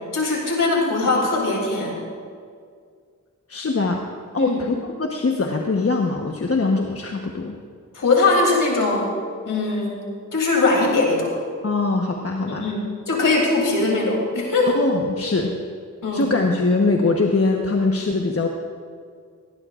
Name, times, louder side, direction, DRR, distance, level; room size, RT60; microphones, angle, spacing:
voice 1, 0.1-1.9 4.4-4.6 7.9-9.1 9.4-10.0 10.3-11.3 12.5-14.8 16.0-16.3, left 3 dB, 90° left, -1 dB, 3.1 m, -21 dB
voice 2, 3.5-7.6 11.6-12.7 14.7-15.5 16.1-18.5, left 3 dB, 50° left, 1 dB, 1.1 m, -22 dB
18.5 x 17.0 x 2.5 m, 2.1 s
cardioid pair, 50°, 31 cm